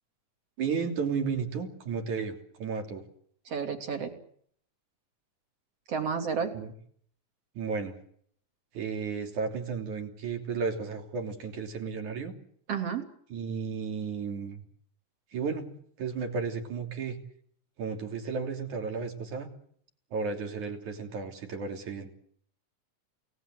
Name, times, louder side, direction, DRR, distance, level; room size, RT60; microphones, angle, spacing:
voice 1, 0.6-3.0 6.5-6.7 7.6-7.9 8.7-12.3 13.3-14.6 15.3-15.7 16.0-17.2 17.8-19.5 20.1-22.1, right 5 dB, 75° right, 4 dB, 4.6 m, -33 dB
voice 2, 3.5-4.1 5.9-6.5 12.7-13.0, right 6 dB, 50° right, 6 dB, 4.0 m, -31 dB
28.5 x 18.5 x 7.9 m, 0.64 s
omnidirectional pair, 3.5 m